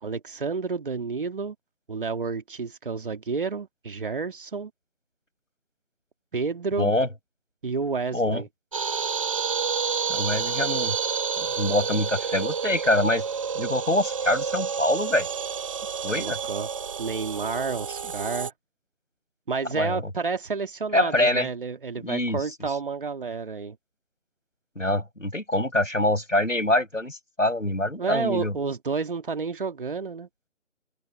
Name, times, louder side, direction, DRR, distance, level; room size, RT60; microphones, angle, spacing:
voice 1, 0.0-1.6 1.9-4.7 6.3-6.9 7.6-8.5 16.2-16.7 17.0-18.5 19.5-23.8 28.0-30.3, right 4 dB, 45° right, 2.5 m, -30 dB
voice 2, 6.8-7.1 8.1-8.4 10.1-10.9 11.4-13.2 13.5-15.3 16.0-16.4 19.7-20.0 20.9-21.5 22.0-22.4 24.8-28.5, left 1 dB, 90° left, 8.0 m, -25 dB
sound 1, 8.7-18.5, right 6 dB, 25° right, 1.7 m, -29 dB
figure-of-eight pair, 155°, 37 cm